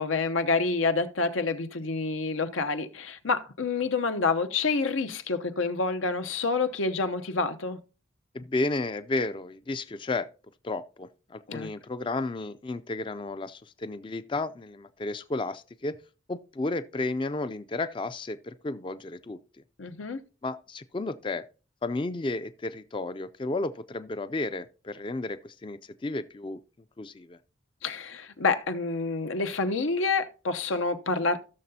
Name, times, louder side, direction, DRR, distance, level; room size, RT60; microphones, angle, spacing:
voice 1, 0.0-7.8 11.5-11.7 19.8-20.2 27.8-31.4, left 4 dB, 85° left, 0.8 m, -28 dB
voice 2, 8.3-10.3 10.6-16.0 16.3-19.4 20.4-21.4 21.8-26.6 27.0-27.4, left 2 dB, 25° left, 0.4 m, -32 dB
16.0 x 6.7 x 2.8 m
head